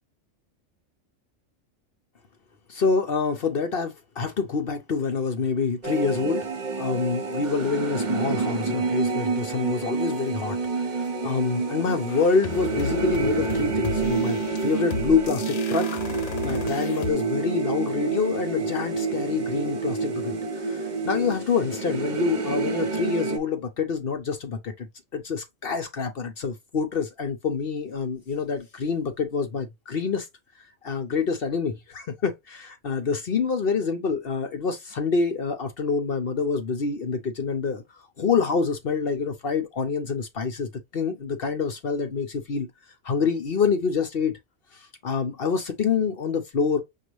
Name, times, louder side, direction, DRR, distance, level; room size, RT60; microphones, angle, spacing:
voice 1, 2.7-6.5 6.8-16.0 16.4-24.9 25.1-30.3 30.8-37.8 38.2-42.7 43.0-44.4 44.7-46.8, left 5 dB, 50° left, 0.9 m, -26 dB
sound 1, 5.8-23.4, right 4 dB, 40° right, 0.9 m, -28 dB
sound 2, 12.1-17.1, left 6 dB, 90° left, 1.0 m, -35 dB
6.4 x 2.4 x 3.1 m
omnidirectional pair, 1.4 m